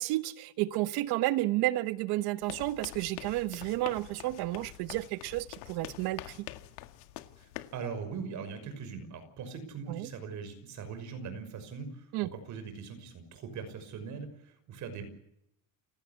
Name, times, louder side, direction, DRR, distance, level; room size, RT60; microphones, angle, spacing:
voice 1, 0.0-6.5 9.9-10.1 12.1-12.3, right 17 dB, 55° right, 1.2 m, -31 dB
sound 1, 2.4-7.8, left 15 dB, 90° left, 2.1 m, -45 dB
voice 2, 7.4-15.1, right 5 dB, 40° right, 6.1 m, -41 dB
29.5 x 17.0 x 8.5 m
cardioid pair, 165°, 45 cm